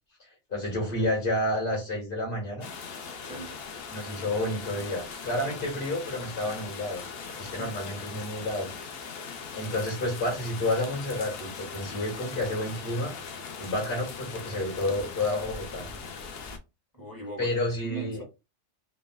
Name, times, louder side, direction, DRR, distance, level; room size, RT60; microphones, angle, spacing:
voice 1, 0.2-2.7 3.9-7.0 7.4-8.7 9.5-13.1 13.6-15.9 17.4-18.2, left 1 dB, 45° left, 2.2 m, -30 dB
sound 1, 2.6-16.6, left 5 dB, 60° left, 0.8 m, -40 dB
voice 2, 3.2-3.6 7.3-7.7 16.9-18.2, right 2 dB, 20° left, 1.0 m, -40 dB
3.9 x 2.4 x 2.4 m
omnidirectional pair, 1.2 m